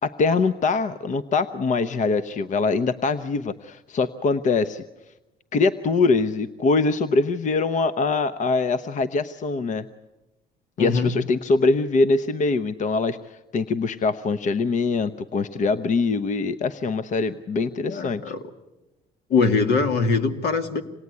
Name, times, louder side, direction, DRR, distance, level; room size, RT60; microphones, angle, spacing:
voice 1, 0.0-4.8 5.5-9.9 10.8-18.3, left 4 dB, 45° left, 12 dB, 0.8 m, -23 dB
voice 2, 10.8-11.1 17.9-18.4 19.3-20.8, left 4 dB, 75° left, 7 dB, 2.2 m, -22 dB
27.0 x 19.5 x 9.6 m, 1.1 s
cardioid pair, 110°, 17 cm